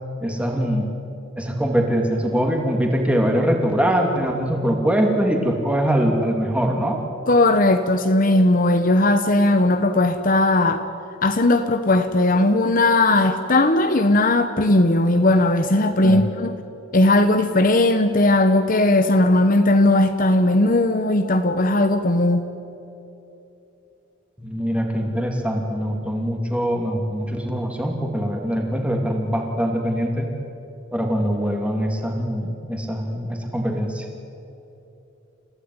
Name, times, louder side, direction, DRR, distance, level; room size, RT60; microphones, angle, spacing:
voice 1, 0.2-0.9 1.4-7.0 16.0-16.3 24.4-30.3 30.9-34.1, equal, 5° right, 2 dB, 2.9 m, -23 dB
voice 2, 7.3-10.9 11.2-16.5 16.9-22.5, left 2 dB, 45° left, 8 dB, 1.1 m, -18 dB
30.0 x 16.5 x 9.7 m, 3.0 s
head